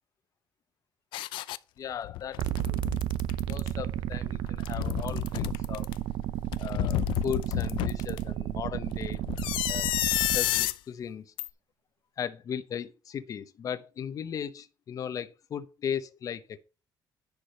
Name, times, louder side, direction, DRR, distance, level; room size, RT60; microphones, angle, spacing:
sound 1, 1.1-1.6 2.0-3.7 4.5-5.9 6.5-8.2 9.3-10.8 11.4-11.5, left 16 dB, 85° left, 0.5 m, -30 dB
voice 1, 1.8-2.8 3.4-5.9 6.6-9.2 9.7-9.9 10.3-11.3 12.2-16.6, left 8 dB, 45° left, 0.9 m, -37 dB
sound 2, 2.4-10.4, right 13 dB, 70° right, 0.6 m, -32 dB
10.5 x 5.0 x 5.5 m
cardioid pair, 130°, 8 cm